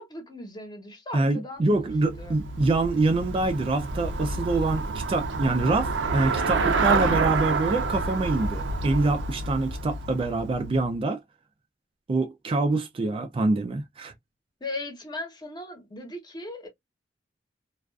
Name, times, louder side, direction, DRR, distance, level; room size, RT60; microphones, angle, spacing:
voice 1, 0.0-1.8 2.2-2.4 14.6-16.7, left 2 dB, 25° left, 0.8 m, -38 dB
voice 2, 1.1-11.2 12.1-14.1, right 2 dB, 30° right, 0.3 m, -25 dB
Traffic noise roadway noise / Bicycle, 1.7-10.9, right 3 dB, 80° right, 0.5 m, -28 dB
2.3 x 2.3 x 2.3 m
head